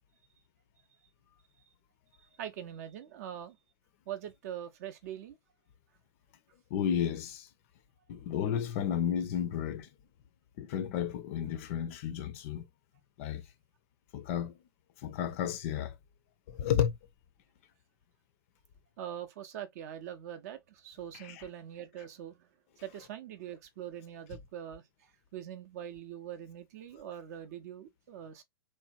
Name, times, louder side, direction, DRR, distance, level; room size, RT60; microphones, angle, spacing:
voice 1, 2.4-3.6 4.1-5.4 19.0-22.5 22.8-28.4, right 10 dB, 40° right, 0.5 m, -43 dB
voice 2, 6.7-7.5 8.1-9.9 10.6-12.6 13.2-13.4 14.1-14.5 15.0-15.9 16.5-17.0 21.1-21.4, left 9 dB, 35° left, 0.5 m, -32 dB
3.2 x 2.2 x 2.5 m
figure-of-eight pair, 110°, 13 cm